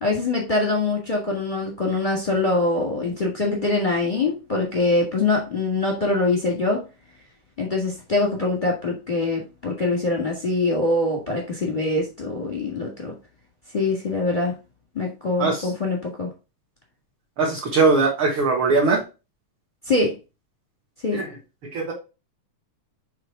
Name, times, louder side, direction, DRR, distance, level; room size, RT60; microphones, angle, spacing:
voice 1, 0.0-6.8 7.6-13.1 13.7-14.5 14.9-16.3 19.9-20.2 21.0-21.2, left 2 dB, 25° left, -1 dB, 1.1 m, -23 dB
voice 2, 15.4-15.7 17.4-19.0 21.1-21.3 21.6-21.9, right 4 dB, 50° right, -2 dB, 2.0 m, -20 dB
6.4 x 3.8 x 4.8 m, 0.30 s
omnidirectional pair, 3.4 m